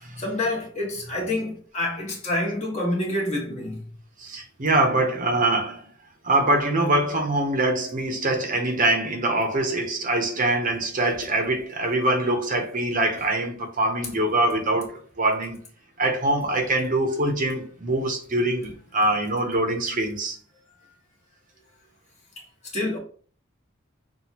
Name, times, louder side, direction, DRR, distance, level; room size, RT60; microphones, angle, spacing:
voice 1, 0.2-3.8 22.7-23.0, left 1 dB, 35° left, 1.3 m, -27 dB
voice 2, 4.2-5.9 6.2-15.6 16.0-20.4, right 2 dB, 40° right, 0.7 m, -24 dB
5.8 x 2.4 x 2.8 m
head